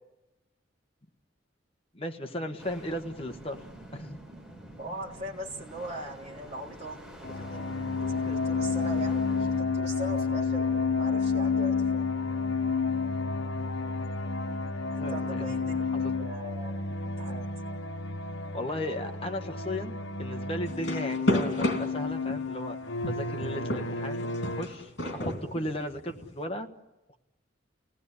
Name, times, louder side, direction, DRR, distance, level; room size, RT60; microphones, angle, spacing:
voice 1, 1.9-3.6 3.9-4.2 15.0-15.5 16.0-16.1 18.5-19.9 20.2-22.8 23.0-26.7, left 1 dB, 30° left, 4 dB, 1.3 m, -36 dB
sound 1, 2.6-9.6, right 1 dB, 5° right, 5.0 m, -48 dB
voice 2, 4.8-7.7 8.0-10.7 11.0-12.1 14.9-17.5, right 1 dB, 35° right, -2 dB, 3.7 m, -41 dB
sound 2, 7.2-24.6, left 4 dB, 80° left, 1.0 m, -30 dB
sound 3, 20.6-22.5 23.0-26.3, left 1 dB, 65° left, 3.3 m, -31 dB
29.5 x 17.5 x 9.9 m, 1.1 s
head